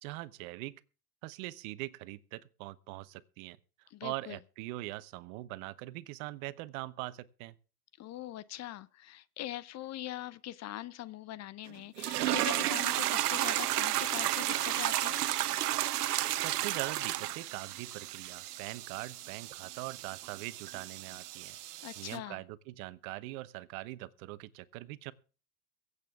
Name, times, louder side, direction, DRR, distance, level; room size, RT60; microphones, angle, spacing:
voice 1, 0.0-0.8 1.2-3.6 4.0-7.5 16.3-21.6 22.0-25.1, right 18 dB, 60° right, 1.0 m, -42 dB
voice 2, 3.9-4.4 8.0-15.2 21.5-22.4, left 14 dB, 35° left, 0.7 m, -42 dB
sound 1, 12.0-22.2, right 14 dB, 80° right, 0.8 m, -33 dB
23.0 x 8.3 x 3.6 m
hypercardioid pair, 90°, 46 cm